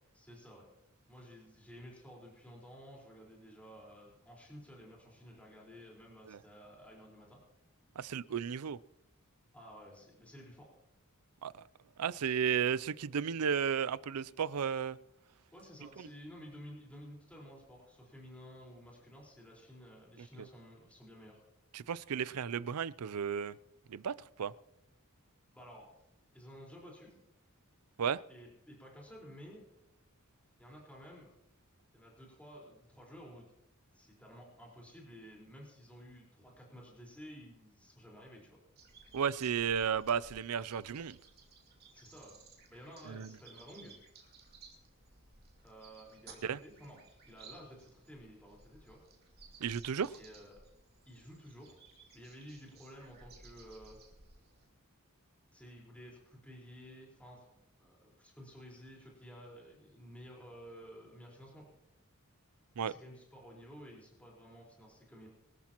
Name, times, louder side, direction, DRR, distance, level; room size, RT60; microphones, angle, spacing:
voice 1, 0.1-0.6 1.1-7.4 9.5-10.7 15.5-21.4 25.5-25.9 26.3-27.1 28.3-29.6 30.6-31.3 31.9-33.5 33.9-38.6 41.9-42.4 42.7-44.0 45.6-47.0 47.3-49.0 50.1-50.6 51.0-51.8 52.1-54.0 55.5-57.5 57.8-61.6 62.8-65.3, equal, 5° left, 4.5 m, -53 dB
voice 2, 8.0-8.8 11.4-11.5 12.0-15.0 21.7-23.6 23.9-24.5 28.0-28.2 39.1-41.2 43.1-43.3 46.4-46.6 49.6-50.1 62.8-62.9, right 7 dB, 85° right, 0.5 m, -33 dB
sound 1, 38.8-54.7, right 4 dB, 45° right, 2.6 m, -59 dB
24.0 x 13.5 x 3.0 m
head